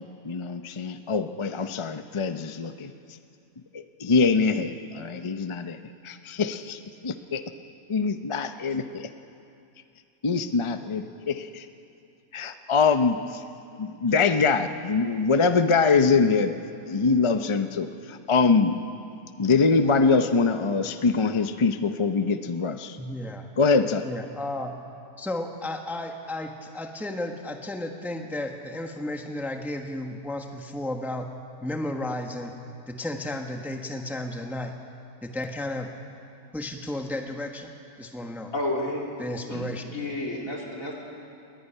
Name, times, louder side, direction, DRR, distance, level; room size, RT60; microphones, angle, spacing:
voice 1, 0.0-2.9 3.7-5.8 6.0-7.4 7.9-9.1 10.2-11.7 12.3-13.4 13.8-16.5 16.9-18.8 19.4-23.0 23.6-24.1, left 4 dB, 35° left, 9 dB, 0.5 m, -24 dB
voice 2, 23.0-23.4 24.0-24.7 25.2-31.3 31.6-32.5 32.9-34.7 35.2-35.9 36.5-37.7 38.0-38.5 39.2-39.8, left 1 dB, ahead, 4 dB, 1.1 m, -33 dB
voice 3, 38.5-39.7 39.9-40.9, left 1 dB, 70° left, -2 dB, 3.8 m, -31 dB
20.5 x 16.0 x 9.9 m, 2.5 s
omnidirectional pair, 1.5 m